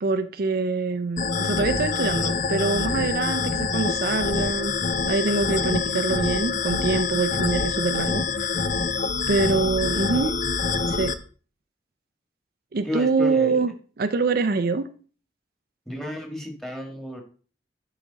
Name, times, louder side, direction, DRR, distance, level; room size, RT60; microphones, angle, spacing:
voice 1, 0.0-4.7 5.0-8.6 9.3-10.3 10.9-11.1 12.7-13.7 14.0-14.8, right 3 dB, 60° right, 9 dB, 0.5 m, -24 dB
sound 1, 1.2-11.1, left 4 dB, 45° left, 0.6 m, -26 dB
voice 2, 12.8-13.6 15.8-17.2, left 1 dB, ahead, 2 dB, 1.6 m, -32 dB
10.5 x 5.0 x 3.9 m, 0.41 s
head